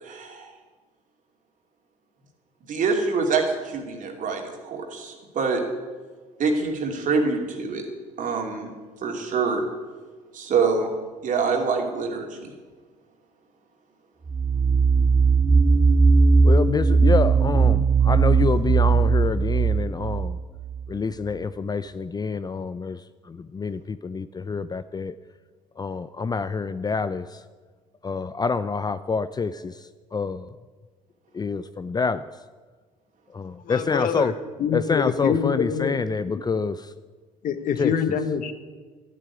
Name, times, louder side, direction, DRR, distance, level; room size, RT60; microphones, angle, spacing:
voice 1, 0.0-0.5 2.7-5.6 6.4-7.8 8.2-8.7 9.0-9.6 10.3-10.9 11.2-12.5, right 4 dB, 55° right, 2 dB, 2.8 m, -25 dB
sound 1, 14.3-20.9, right 4 dB, 20° right, 0.8 m, -19 dB
voice 2, 16.4-20.4 20.9-23.0 23.3-25.1 25.8-27.4 28.0-29.7 30.1-30.5 31.3-32.2 33.3-34.3 34.7-36.9 37.8-37.9, left 4 dB, 25° left, 13 dB, 0.5 m, -27 dB
voice 3, 33.6-34.3 34.6-36.0 36.3-36.4 37.4-38.5, left 7 dB, 60° left, 9 dB, 1.3 m, -25 dB
12.0 x 7.5 x 9.8 m, 1.4 s
hypercardioid pair, 65°, 16 cm